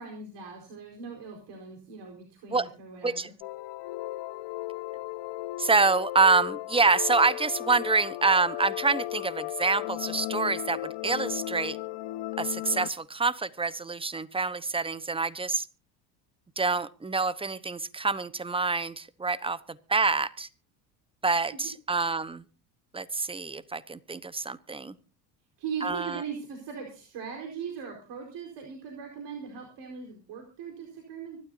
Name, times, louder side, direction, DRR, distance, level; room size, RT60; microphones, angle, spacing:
voice 1, 0.0-3.3 25.6-31.4, right 6 dB, 55° right, 2 dB, 4.5 m, -39 dB
sound 1, 3.4-12.9, left 17 dB, 55° left, 1.2 m, -35 dB
voice 2, 5.6-11.8 12.4-15.7 16.6-19.6 19.9-20.5 21.2-22.4 22.9-24.9 25.8-26.2, right 4 dB, 10° right, 17 dB, 1.0 m, -26 dB
25.0 x 12.5 x 2.7 m, 0.34 s
hypercardioid pair, 75°, 49 cm